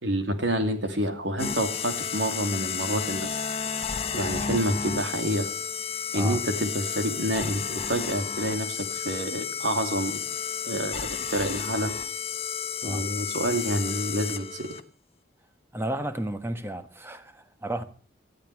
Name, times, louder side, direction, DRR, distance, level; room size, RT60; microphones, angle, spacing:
voice 1, 0.0-3.3 4.1-5.5 6.1-10.2 10.7-11.9 12.8-14.7, right 1 dB, 80° right, 2.9 m, -28 dB
sound 1, 1.4-14.8, left 7 dB, 30° left, 1.1 m, -32 dB
voice 2, 15.7-17.8, right 1 dB, 15° right, 1.3 m, -33 dB
19.5 x 13.5 x 4.8 m
head